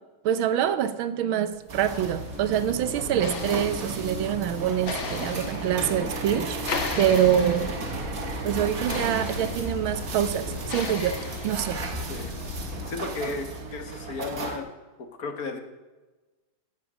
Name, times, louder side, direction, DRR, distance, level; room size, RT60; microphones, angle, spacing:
voice 1, 0.2-6.7 7.0-7.7 8.4-11.2 11.4-11.8, right 9 dB, 80° right, 12 dB, 1.7 m, -25 dB
sound 1, 1.5-13.0, left 5 dB, 70° left, 2.2 m, -37 dB
sound 2, 1.7-14.6, right 3 dB, 45° right, 1.7 m, -35 dB
Train, 6.7-12.9, equal, 30° right, 1.6 m, -39 dB
voice 2, 12.9-14.7 15.0-15.6, left 4 dB, 50° left, 6 dB, 1.7 m, -34 dB
17.0 x 8.8 x 6.2 m, 1.2 s
omnidirectional pair, 2.3 m